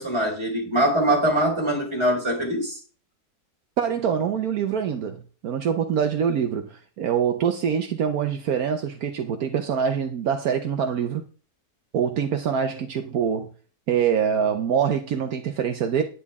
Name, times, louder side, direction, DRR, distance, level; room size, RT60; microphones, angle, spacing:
voice 1, 0.0-2.8, right 1 dB, 15° right, 4.6 m, -23 dB
voice 2, 3.8-11.2 11.9-13.5 13.9-16.0, right 7 dB, 70° right, 1.3 m, -24 dB
10.5 x 9.6 x 3.6 m
omnidirectional pair, 1.6 m